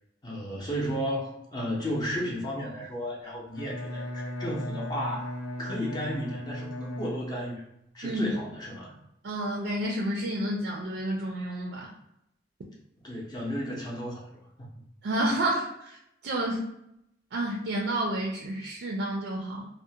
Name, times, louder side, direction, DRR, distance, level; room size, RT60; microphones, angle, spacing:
voice 1, 0.2-5.3 5.6-7.6 7.9-8.9 13.0-14.7, equal, 20° left, -3 dB, 0.5 m, -33 dB
Bowed string instrument, 3.5-7.8, left 1 dB, 90° left, 0.6 m, -37 dB
voice 2, 8.0-8.4 9.2-12.0 15.0-16.0 16.2-16.6 17.3-19.7, right 1 dB, 65° right, -2 dB, 0.4 m, -30 dB
2.3 x 2.1 x 2.7 m, 0.81 s
head